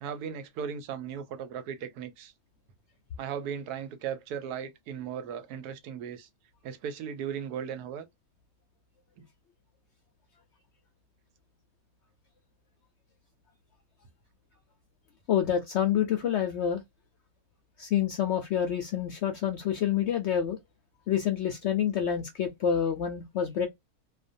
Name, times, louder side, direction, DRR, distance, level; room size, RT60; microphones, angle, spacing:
voice 1, 0.0-2.3 3.2-6.3 6.6-8.1 9.2-9.3, right 8 dB, 90° right, 1.1 m, -37 dB
voice 2, 15.3-16.8 17.8-20.6 21.1-23.7, left 9 dB, 70° left, 0.6 m, -27 dB
2.5 x 2.2 x 2.5 m
omnidirectional pair, 1.6 m